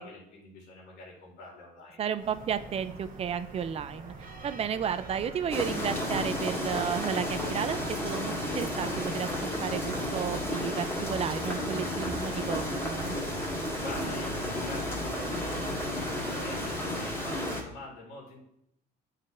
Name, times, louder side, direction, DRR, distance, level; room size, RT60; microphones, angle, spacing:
voice 1, 0.0-2.0 13.4-18.4, left 1 dB, 90° left, -4 dB, 1.9 m, -45 dB
voice 2, 2.0-13.2, right 8 dB, 35° right, 13 dB, 0.4 m, -33 dB
sound 1, 2.1-17.6, right 3 dB, 55° right, 1.0 m, -45 dB
sound 2, 5.5-17.6, left 1 dB, 15° left, 1.7 m, -32 dB
9.8 x 4.1 x 2.5 m, 0.78 s
cardioid pair, 110°, 17 cm